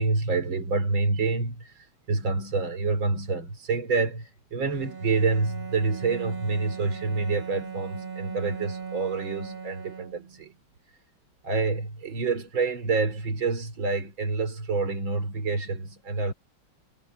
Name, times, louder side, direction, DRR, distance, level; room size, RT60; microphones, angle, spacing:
voice 1, 0.0-10.5 11.4-16.3, right 4 dB, 70° right, 4.7 m, -27 dB
Bowed string instrument, 4.7-10.5, right 6 dB, 30° right, 1.2 m, -38 dB
omnidirectional pair, 2.2 m